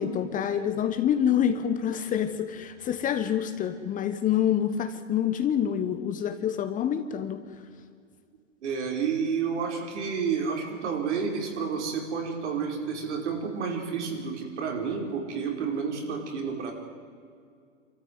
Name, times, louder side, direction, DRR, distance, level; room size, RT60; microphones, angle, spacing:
voice 1, 0.0-7.4, left 9 dB, 20° left, 9 dB, 1.1 m, -27 dB
voice 2, 8.6-16.7, right 6 dB, 65° right, 1 dB, 5.2 m, -30 dB
25.5 x 14.0 x 9.6 m, 2.2 s
hypercardioid pair, 120°, 37 cm